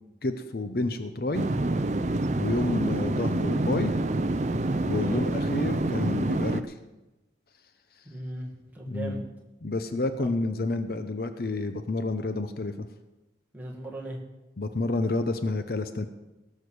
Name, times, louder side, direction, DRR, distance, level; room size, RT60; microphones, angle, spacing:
voice 1, 0.2-1.5 2.4-3.9 4.8-6.6 8.9-9.2 9.6-12.9 14.6-16.1, left 2 dB, 55° left, 9 dB, 0.7 m, -29 dB
sound 1, 1.3-6.6, right 2 dB, 40° right, 0.5 m, -27 dB
voice 2, 8.0-9.2 10.2-10.3 13.5-14.2, right 1 dB, 10° right, -2 dB, 2.0 m, -38 dB
17.5 x 6.5 x 6.4 m, 1.0 s
head